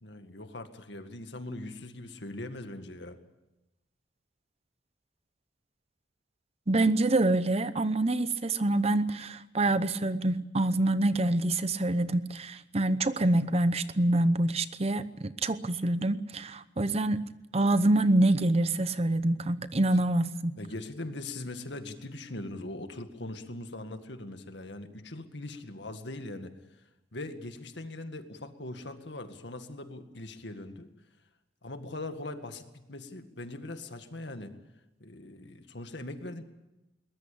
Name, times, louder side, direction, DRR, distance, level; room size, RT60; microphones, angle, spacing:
voice 1, 0.0-3.2 19.7-19.9 20.6-26.5 27.1-30.9 31.6-34.5 35.0-36.4, left 2 dB, 70° left, 7 dB, 2.0 m, -41 dB
voice 2, 6.7-17.2 17.5-20.5, right 2 dB, 35° right, 14 dB, 0.8 m, -26 dB
22.0 x 20.0 x 8.6 m, 0.98 s
head